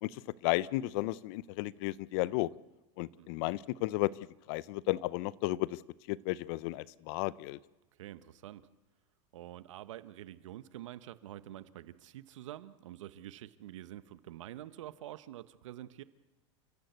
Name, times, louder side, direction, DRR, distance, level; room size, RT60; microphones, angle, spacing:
voice 1, 0.0-2.5 3.0-4.1 4.5-5.8 6.1-7.6, left 19 dB, 55° left, 20 dB, 0.7 m, -33 dB
voice 2, 3.2-3.5 8.0-8.7 9.3-16.0, right 13 dB, 85° right, 14 dB, 1.3 m, -47 dB
29.5 x 15.0 x 8.2 m, 1.1 s
supercardioid pair, 150°, 16 cm